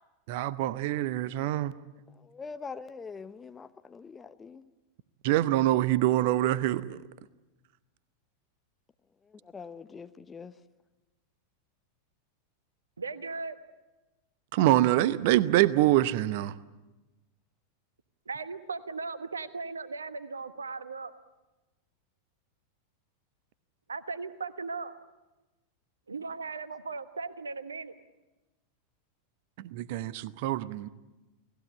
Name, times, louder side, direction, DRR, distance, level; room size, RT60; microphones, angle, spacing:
voice 1, 0.3-1.7 5.2-7.0 14.5-16.5 29.6-30.9, right 15 dB, 50° right, 0.8 m, -25 dB
voice 2, 2.2-4.7 9.4-10.5, left 5 dB, 15° left, 0.9 m, -43 dB
voice 3, 13.0-13.6 18.3-21.1 23.9-24.9 26.1-27.9, right 4 dB, 75° right, 1.2 m, -37 dB
29.5 x 18.5 x 8.4 m
figure-of-eight pair, 90°, 0 cm